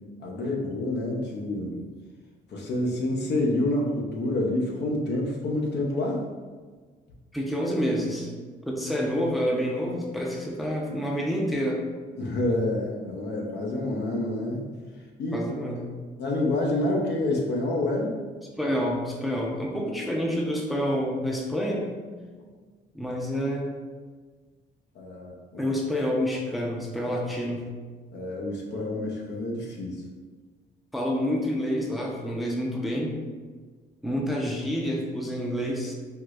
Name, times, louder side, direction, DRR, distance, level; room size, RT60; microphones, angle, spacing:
voice 1, 0.2-1.9 2.5-6.3 12.2-14.6 15.2-15.4 16.2-18.2 24.9-25.6 28.1-30.0, left 1 dB, 65° left, -1 dB, 0.7 m, -28 dB
voice 2, 7.3-8.3 8.7-11.8 15.3-15.9 18.6-22.0 22.9-23.7 25.6-27.7 30.9-33.1 34.0-35.9, equal, ahead, -1 dB, 0.5 m, -28 dB
4.6 x 2.0 x 2.4 m, 1.5 s
cardioid pair, 80°, 19 cm